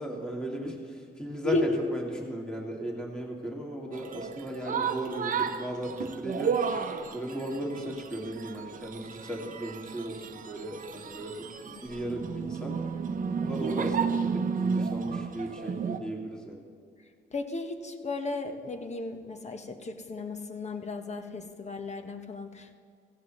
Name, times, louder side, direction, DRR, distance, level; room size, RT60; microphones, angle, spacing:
voice 1, 0.0-12.8 13.4-16.6, right 1 dB, 5° left, -1 dB, 2.4 m, -36 dB
voice 2, 1.4-1.8 11.6-11.8 17.3-22.7, left 2 dB, 35° left, 7 dB, 1.2 m, -34 dB
sound 1, 3.9-16.0, right 6 dB, 45° right, 0.9 m, -33 dB
16.0 x 15.5 x 3.2 m, 2.2 s
cardioid pair, 90°, 20 cm